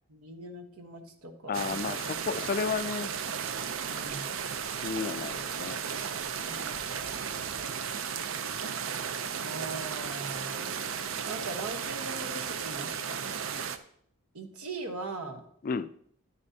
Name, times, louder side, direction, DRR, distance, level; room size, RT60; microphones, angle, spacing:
voice 1, 0.1-2.1 3.9-4.5 6.4-6.8 9.4-10.8 11.2-13.4 14.3-15.4, right 3 dB, 85° right, 6 dB, 1.2 m, -41 dB
voice 2, 1.5-3.1 4.8-5.8 15.6-15.9, left 5 dB, 40° left, 14 dB, 0.3 m, -32 dB
sound 1, 1.5-13.8, right 7 dB, 65° right, 0.5 m, -35 dB
9.7 x 9.5 x 2.7 m, 0.64 s
head